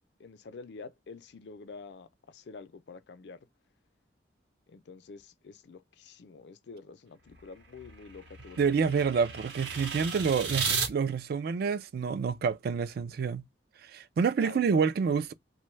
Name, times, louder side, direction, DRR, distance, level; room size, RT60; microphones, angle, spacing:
voice 1, 0.2-3.4 4.7-9.0 14.4-14.9, left 4 dB, 70° left, 0.4 m, -48 dB
sound 1, 7.3-10.9, right 5 dB, 75° right, 0.8 m, -35 dB
voice 2, 8.6-13.5 13.8-15.3, right 6 dB, 60° right, 0.3 m, -28 dB
2.6 x 2.2 x 3.0 m
head